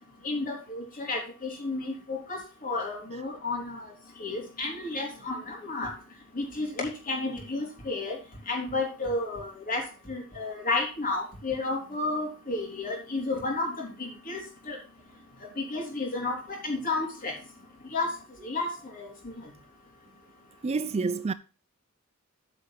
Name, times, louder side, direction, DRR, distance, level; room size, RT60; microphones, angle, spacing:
voice 1, 0.2-3.8 4.2-5.9 6.4-8.2 8.5-14.4 14.7-14.8 15.6-17.3 17.9-18.1 18.4-19.3, left 3 dB, 40° left, 3.7 m, -32 dB
voice 2, 20.6-21.3, right 4 dB, 30° right, 0.4 m, -28 dB
9.4 x 5.6 x 5.7 m
head